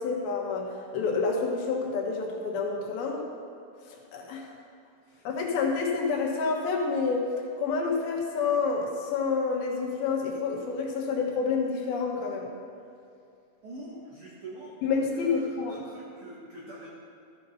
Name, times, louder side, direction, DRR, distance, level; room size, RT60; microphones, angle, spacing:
voice 1, 0.0-3.3 3.9-4.5 5.2-7.3 7.6-12.5 14.8-15.8, left 4 dB, 70° left, 0 dB, 3.1 m, -28 dB
voice 2, 5.0-5.3 13.6-14.8 15.1-16.9, right 1 dB, 60° right, -5 dB, 1.5 m, -45 dB
14.0 x 6.8 x 5.7 m, 2.6 s
omnidirectional pair, 4.6 m